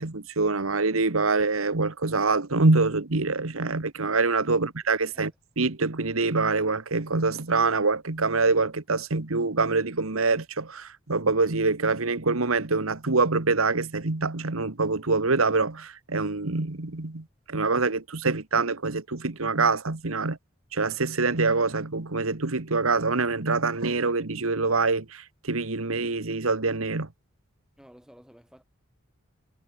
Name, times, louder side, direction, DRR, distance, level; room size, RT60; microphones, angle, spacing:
voice 1, 0.0-5.3 5.6-20.4 20.7-27.1, right 3 dB, 85° right, 1.6 m, -25 dB
voice 2, 27.8-28.6, equal, 5° right, 7.4 m, -53 dB
head